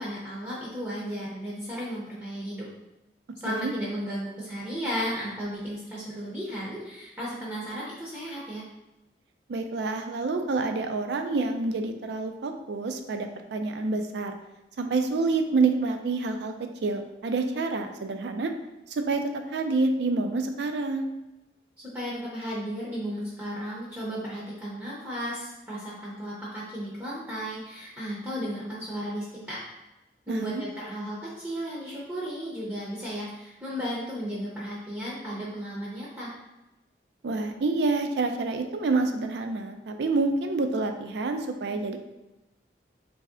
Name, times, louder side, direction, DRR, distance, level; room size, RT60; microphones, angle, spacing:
voice 1, 0.0-2.7 3.4-8.7 21.8-29.7 30.3-36.3, equal, 10° right, -7 dB, 0.6 m, -34 dB
voice 2, 9.5-14.3 14.8-18.5 18.9-21.1 30.3-30.6 37.2-42.0, right 3 dB, 70° right, 6 dB, 0.4 m, -28 dB
3.1 x 2.7 x 3.5 m, 0.99 s
head